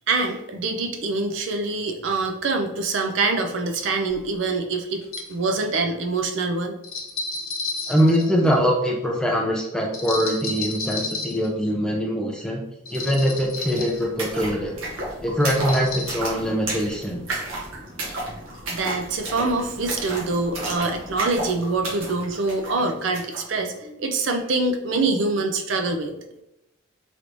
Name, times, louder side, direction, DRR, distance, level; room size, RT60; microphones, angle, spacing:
voice 1, 0.1-6.8 18.6-26.2, right 3 dB, 65° right, 5 dB, 0.4 m, -25 dB
sound 1, 4.1-4.2 5.0-5.3 6.8-8.7 9.9-11.5 12.8-14.0 15.4-16.1, left 3 dB, 90° left, 0.9 m, -32 dB
voice 2, 7.9-12.6 12.9-14.7 15.2-17.2, equal, 5° left, -1 dB, 0.4 m, -23 dB
sound 2, 13.0-13.1 13.3-23.5, right 2 dB, 80° right, 1.1 m, -33 dB
3.3 x 3.0 x 2.5 m, 0.88 s
head